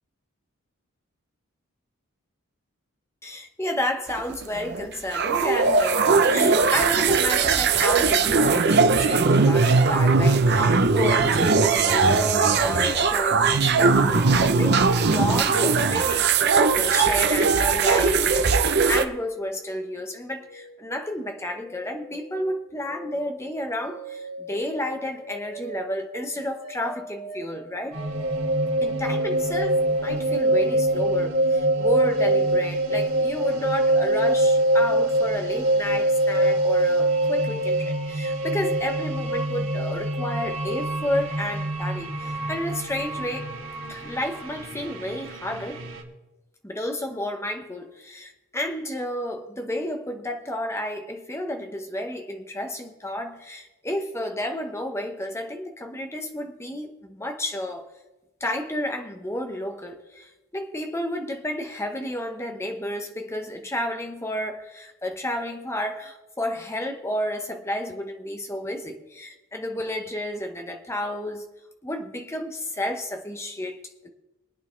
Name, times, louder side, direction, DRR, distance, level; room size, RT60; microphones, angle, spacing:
voice 1, 3.2-16.3 16.7-28.0 28.8-43.5 43.9-45.8 46.6-57.9 58.4-71.4 71.8-74.1, left 1 dB, 15° left, 1.1 m, -31 dB
sound 1, 4.1-19.0, right 4 dB, 50° right, 0.7 m, -20 dB
sound 2, 20.2-38.0, right 1 dB, 80° left, 5.8 m, -43 dB
sound 3, 27.9-46.0, right 1 dB, 80° right, 2.6 m, -24 dB
23.5 x 9.1 x 3.3 m
head